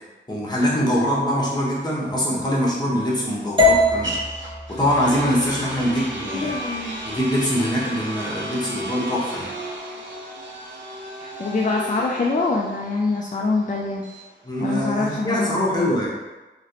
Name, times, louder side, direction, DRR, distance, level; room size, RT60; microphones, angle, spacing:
voice 1, 0.3-4.2 4.7-6.5 7.0-9.5 14.4-16.1, equal, 20° left, -5 dB, 1.0 m, -23 dB
sound 1, 1.7-15.5, right 1 dB, 75° right, 0.7 m, -35 dB
sound 2, 3.6-7.7, left 2 dB, 25° right, 0.6 m, -24 dB
voice 2, 6.3-7.0 11.2-14.0 14.6-15.9, left 3 dB, 40° left, -1 dB, 0.4 m, -24 dB
3.1 x 2.9 x 2.9 m, 1.2 s
wide cardioid pair, 55°, 20 cm